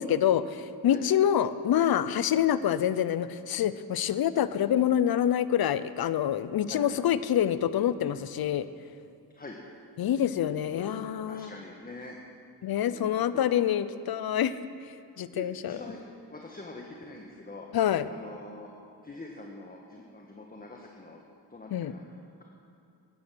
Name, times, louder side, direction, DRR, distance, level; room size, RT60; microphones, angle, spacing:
voice 1, 0.0-8.7 10.0-11.5 12.6-14.5 15.2-15.8 17.7-18.1 21.7-21.9, left 10 dB, 60° left, 15 dB, 0.7 m, -26 dB
voice 2, 10.7-12.2 12.6-13.5 15.3-17.7 18.1-18.7 19.0-21.2 21.5-22.0, left 2 dB, 20° left, 0 dB, 1.4 m, -44 dB
13.5 x 10.5 x 6.4 m, 2.6 s
cardioid pair, 75°, 42 cm